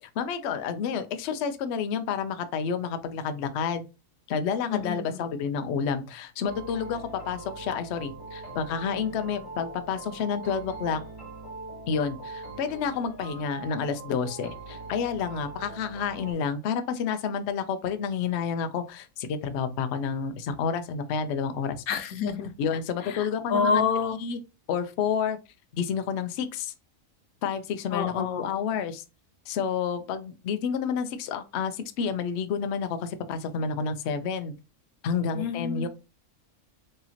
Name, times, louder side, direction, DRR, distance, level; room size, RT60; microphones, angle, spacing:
voice 1, 0.0-3.9 4.3-11.0 11.9-21.8 22.6-23.8 24.2-24.4 24.7-25.4 25.7-26.7 27.4-29.0 29.5-34.5 35.0-35.9, left 6 dB, 65° left, 9 dB, 0.7 m, -29 dB
voice 2, 4.7-5.2 21.9-22.5 23.1-24.2 27.9-28.5 35.3-35.9, left 6 dB, 90° left, 9 dB, 1.1 m, -28 dB
sound 1, 6.5-16.3, right 2 dB, 30° left, 2.3 m, -42 dB
4.8 x 2.9 x 2.7 m, 0.28 s
omnidirectional pair, 1.5 m